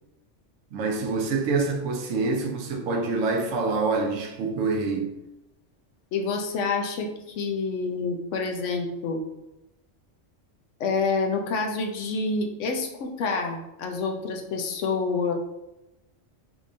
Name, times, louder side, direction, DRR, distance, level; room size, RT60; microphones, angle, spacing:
voice 1, 0.7-5.1, right 3 dB, 85° right, 1.0 m, -26 dB
voice 2, 6.1-9.2 10.8-15.3, left 4 dB, 75° left, 0.9 m, -28 dB
3.6 x 2.9 x 2.6 m
omnidirectional pair, 1.3 m